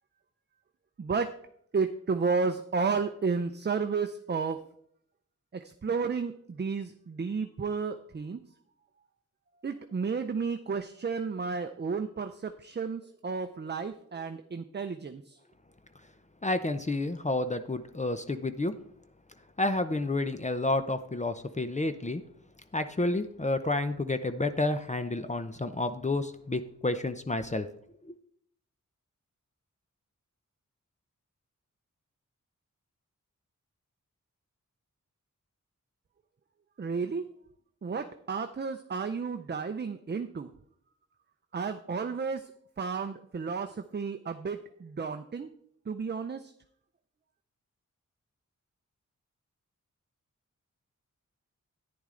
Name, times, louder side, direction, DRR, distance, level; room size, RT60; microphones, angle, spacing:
voice 1, 1.0-1.3 1.7-4.6 5.5-8.4 9.6-15.4 36.8-37.2 37.8-40.5 41.5-42.5 42.8-45.5 45.9-46.5, right 5 dB, 35° right, 8 dB, 0.5 m, -32 dB
voice 2, 16.4-18.7 19.6-22.2 22.7-27.7, left 2 dB, 25° left, 10 dB, 0.6 m, -30 dB
10.5 x 9.7 x 3.8 m, 0.68 s
wide cardioid pair, 75°, 31 cm